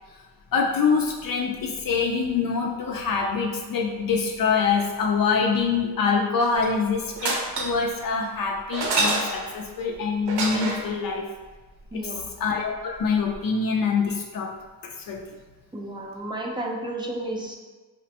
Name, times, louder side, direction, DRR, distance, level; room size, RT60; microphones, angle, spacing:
voice 1, 0.5-11.3 11.9-12.0 12.4-14.5 14.8-15.2, left 5 dB, 60° left, 0 dB, 0.5 m, -25 dB
sound 1, 6.4-6.8 7.2-7.9 8.7-9.6 10.3-10.9 13.1-13.2 13.3-13.4, right 2 dB, 80° right, 0.7 m, -27 dB
voice 2, 11.9-12.3 15.7-17.6, right 1 dB, 10° right, -2 dB, 0.5 m, -32 dB
4.8 x 2.1 x 2.8 m, 1.3 s
cardioid pair, 100°, 39 cm